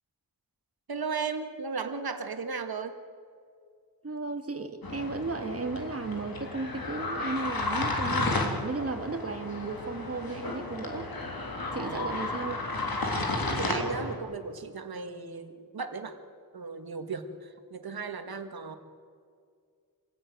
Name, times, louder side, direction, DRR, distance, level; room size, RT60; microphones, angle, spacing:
voice 1, 0.9-3.0 11.8-12.2 13.5-16.2 16.5-18.8, right 5 dB, 85° right, 7 dB, 2.0 m, -36 dB
voice 2, 4.0-11.1 11.7-12.6, right 3 dB, 40° right, 6 dB, 2.1 m, -35 dB
sound 1, 4.8-14.2, left 2 dB, 80° left, 3.6 m, -33 dB
26.0 x 16.5 x 9.6 m, 2.2 s
wide cardioid pair, 105°, 36 cm